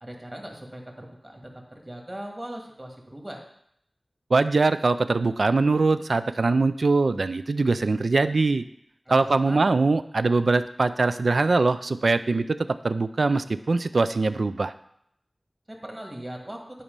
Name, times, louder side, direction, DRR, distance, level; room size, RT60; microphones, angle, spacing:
voice 1, 0.0-3.4 9.1-9.7 15.7-16.6, right 1 dB, 30° right, 1 dB, 1.8 m, -39 dB
voice 2, 4.3-8.6 9.1-12.6 12.8-14.7, right 3 dB, 85° right, 12 dB, 0.4 m, -22 dB
10.0 x 4.2 x 5.3 m, 0.72 s
wide cardioid pair, 70°, 0 cm